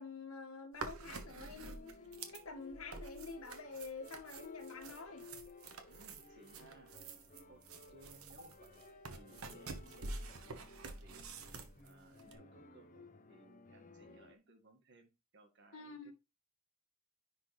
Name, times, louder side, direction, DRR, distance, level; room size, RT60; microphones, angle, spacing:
voice 1, 0.0-2.0 2.3-5.3 8.4-8.5 15.7-16.1, left 4 dB, 90° left, 1.8 m, -48 dB
sound 1, 0.7-12.3, right 3 dB, 85° right, 1.2 m, -49 dB
sound 2, 1.0-14.3, left 3 dB, 40° left, 0.8 m, -57 dB
voice 2, 5.9-6.9 7.5-7.6 7.9-8.8 9.1-11.2 11.8-16.1, right 2 dB, 55° right, 1.8 m, -63 dB
10.0 x 4.1 x 3.2 m
head